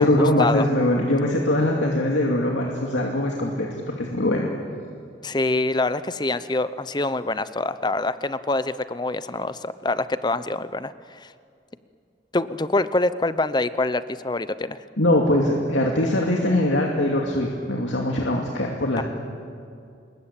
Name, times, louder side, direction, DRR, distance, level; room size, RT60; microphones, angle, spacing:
voice 1, 0.0-3.7 4.0-4.5 15.0-19.0, left 1 dB, 90° left, 0 dB, 2.5 m, -22 dB
voice 2, 5.2-11.3 12.3-14.8 19.0-19.1, left 2 dB, 25° left, 14 dB, 0.7 m, -25 dB
26.5 x 21.5 x 8.9 m, 2.4 s
head